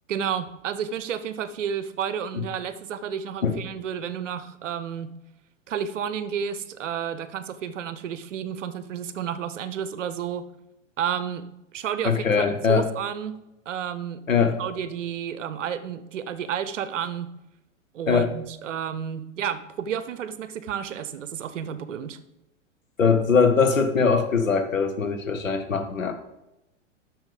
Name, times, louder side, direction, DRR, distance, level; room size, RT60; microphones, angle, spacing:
voice 1, 0.1-5.1 5.7-10.5 11.0-11.4 11.7-13.4 13.7-17.3 17.9-22.2, right 8 dB, 70° right, 13 dB, 0.9 m, -31 dB
voice 2, 12.0-12.9 14.3-14.6 18.1-18.3 23.0-26.1, left 5 dB, 85° left, 7 dB, 1.2 m, -21 dB
8.0 x 6.3 x 5.1 m, 0.92 s
hypercardioid pair, 105°, 38 cm